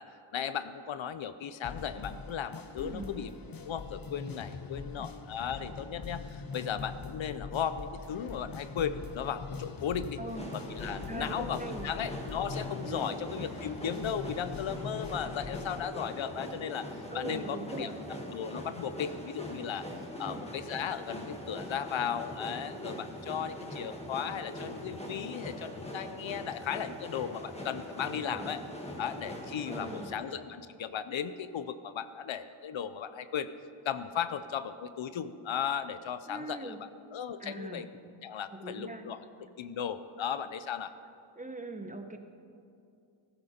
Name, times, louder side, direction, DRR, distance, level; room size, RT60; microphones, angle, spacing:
voice 1, 0.0-3.3 3.6-10.2 10.5-17.9 18.3-19.9 20.2-28.6 29.0-33.5 33.8-37.9 38.2-39.2 39.6-40.9, left 8 dB, 70° left, 13 dB, 0.7 m, -36 dB
sound 1, 1.6-15.8, left 5 dB, 45° left, 0.9 m, -43 dB
voice 2, 2.8-3.1 10.2-10.5 11.1-11.9 12.8-13.2 17.1-17.9 20.2-20.4 28.2-28.5 29.6-30.1 36.3-36.8 37.4-37.8 38.6-39.0 41.4-42.2, right 2 dB, 15° right, 6 dB, 0.9 m, -41 dB
sound 2, 10.3-30.1, equal, 15° left, 1.9 m, -42 dB
15.5 x 13.5 x 4.3 m, 2.5 s
wide cardioid pair, 115°, 48 cm